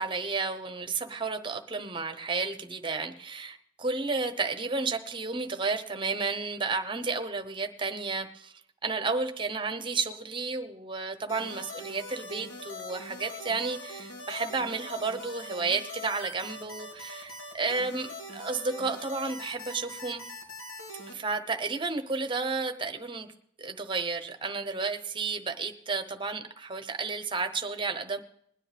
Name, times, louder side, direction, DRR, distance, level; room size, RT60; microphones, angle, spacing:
voice 1, 0.0-8.5 8.8-20.2 21.1-23.3 23.6-28.2, right 4 dB, 25° right, 7 dB, 0.9 m, -32 dB
sound 1, 11.3-21.1, left 1 dB, 90° left, 3.1 m, -42 dB
21.0 x 9.9 x 3.5 m, 0.70 s
head